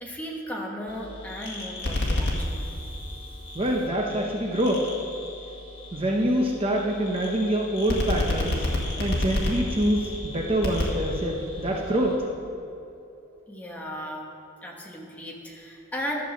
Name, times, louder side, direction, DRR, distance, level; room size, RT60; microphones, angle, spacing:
voice 1, 0.0-2.7 13.5-14.3 14.6-16.2, equal, 5° left, -2 dB, 1.3 m, -36 dB
sound 1, 0.9-12.2, left 1 dB, 55° left, 1.9 m, -31 dB
voice 2, 3.5-4.9 5.9-8.7 9.0-12.3, right 1 dB, 25° right, 0 dB, 0.8 m, -25 dB
12.0 x 6.2 x 7.1 m, 2.9 s
head